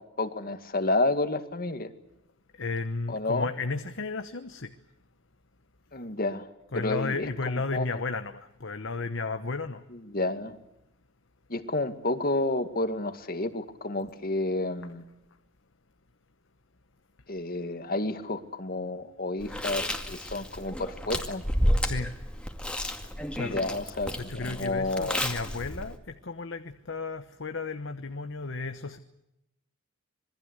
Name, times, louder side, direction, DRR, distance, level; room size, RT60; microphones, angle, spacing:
voice 1, 0.0-1.9 3.1-3.5 5.9-6.5 6.7-7.9 9.9-10.6 11.5-15.0 17.3-21.4 23.4-25.3, left 2 dB, 45° left, 9 dB, 2.1 m, -30 dB
voice 2, 2.6-4.7 6.7-9.8 21.8-22.1 23.3-23.6 24.2-29.0, left 3 dB, 60° left, 9 dB, 1.2 m, -33 dB
Chewing mastication, 19.4-26.0, equal, 5° left, 2.3 m, -31 dB
27.0 x 21.5 x 8.2 m, 0.86 s
head